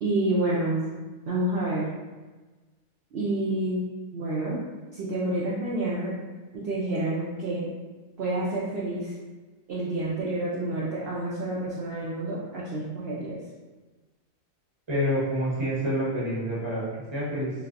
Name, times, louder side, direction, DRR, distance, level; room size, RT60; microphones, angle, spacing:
voice 1, 0.0-1.9 3.1-4.6 4.9-6.1 6.5-7.7 8.2-9.1 9.7-13.4, right 1 dB, 65° right, -6 dB, 0.6 m, -29 dB
voice 2, 14.9-16.8 17.1-17.5, equal, 25° right, -7 dB, 0.9 m, -27 dB
3.3 x 2.5 x 2.5 m, 1.3 s
omnidirectional pair, 1.5 m